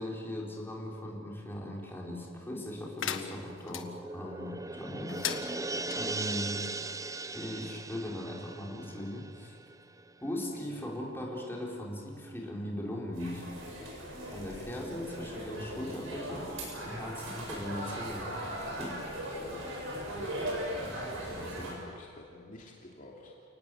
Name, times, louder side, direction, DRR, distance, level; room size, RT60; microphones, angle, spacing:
voice 1, 0.0-5.2 6.0-6.7 7.3-9.6 10.2-13.5 14.3-18.3 18.7-19.0 20.1-20.5 20.8-21.7, left 1 dB, 10° left, -2 dB, 4.7 m, -39 dB
sound 1, 3.0-3.8 5.1-6.0, left 8 dB, 75° left, 1.5 m, -37 dB
sound 2, 3.1-10.1 10.4-10.5, right 2 dB, 15° right, 0.7 m, -39 dB
sound 3, 13.1-21.7, right 1 dB, 85° right, 7.9 m, -39 dB
voice 2, 14.5-15.2 15.9-16.5 19.3-19.7 21.2-23.3, left 1 dB, 45° left, -2 dB, 2.8 m, -49 dB
29.5 x 19.0 x 7.9 m, 2.4 s
head